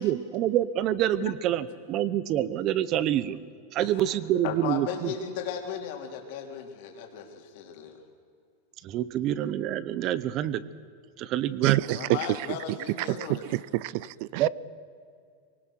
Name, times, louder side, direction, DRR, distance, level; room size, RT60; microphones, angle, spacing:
voice 1, 0.0-3.4 3.7-5.1 8.8-10.6 11.2-11.8 14.4-14.5, right 12 dB, 35° right, 0.8 m, -27 dB
voice 2, 4.4-7.9 11.9-13.4 13.8-13.9, left 7 dB, 50° left, 3.2 m, -36 dB
voice 3, 11.6-12.2 13.0-14.5, right 20 dB, 50° right, 0.4 m, -28 dB
24.0 x 18.5 x 6.4 m
supercardioid pair, 160°, 0 cm